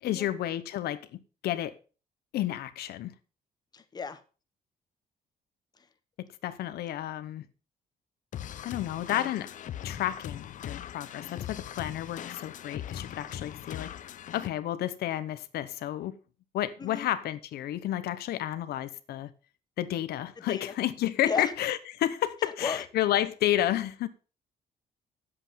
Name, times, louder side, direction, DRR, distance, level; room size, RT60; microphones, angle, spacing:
voice 1, 0.0-1.7 2.3-3.1 6.4-7.5 8.6-9.5 9.8-13.9 14.3-16.1 16.5-19.3 19.8-24.1, left 12 dB, 80° left, 1.0 m, -31 dB
voice 2, 3.7-4.2 5.8-5.9 16.8-17.1 20.5-20.7 21.2-21.5 22.4-22.8, left 5 dB, 25° left, 1.0 m, -34 dB
sound 1, 8.3-14.5, left 10 dB, 55° left, 0.7 m, -40 dB
9.8 x 8.0 x 5.7 m
cardioid pair, 150°, 16 cm